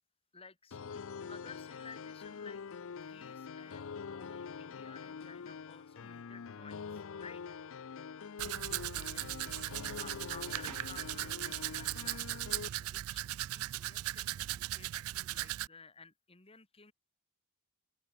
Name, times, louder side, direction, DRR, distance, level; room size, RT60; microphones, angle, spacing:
voice 1, 0.3-1.0 1.3-2.6 2.9-7.6 8.7-8.9 9.1-9.3 10.0-11.3 11.6-16.9, left 4 dB, 25° left, 2.3 m, -55 dB
sound 1, 0.7-12.7, left 6 dB, 60° left, 0.5 m, -45 dB
Domestic sounds home sounds, 8.4-15.7, right 15 dB, 70° right, 0.3 m, -38 dB
open air
head